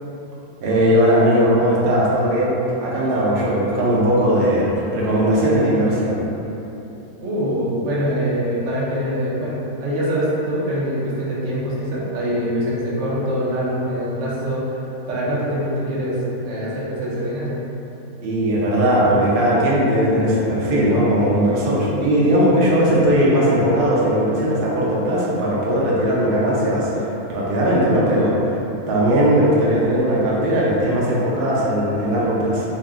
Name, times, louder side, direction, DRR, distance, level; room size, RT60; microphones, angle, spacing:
voice 1, 0.6-6.2 18.2-28.4 28.9-32.6, equal, 85° right, -6 dB, 0.4 m, -18 dB
voice 2, 7.2-14.8 15.1-16.2 16.4-17.6, equal, 60° right, -7 dB, 0.9 m, -24 dB
2.4 x 2.1 x 3.5 m, 3.0 s
omnidirectional pair, 1.6 m